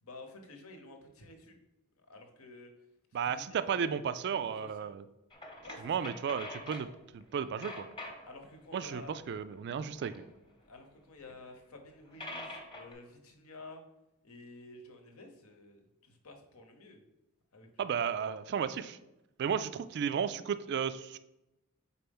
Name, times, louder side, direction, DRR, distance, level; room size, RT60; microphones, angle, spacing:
voice 1, 0.0-1.6 2.0-2.7 3.2-4.3 4.6-4.9 5.6-6.1 8.3-9.2 10.7-13.8 14.2-17.0 17.5-17.9, left 2 dB, 80° left, 5 dB, 1.0 m, -51 dB
voice 2, 3.1-5.0 5.8-7.9 8.7-10.2 17.8-19.0 19.4-21.2, right 7 dB, 50° right, 13 dB, 0.3 m, -34 dB
sound 1, 5.3-6.9 7.2-8.4 8.7-10.6 11.3-11.4 11.8-11.9 12.1-12.9, left 1 dB, 20° left, 0.9 m, -45 dB
4.4 x 4.2 x 5.3 m, 0.96 s
head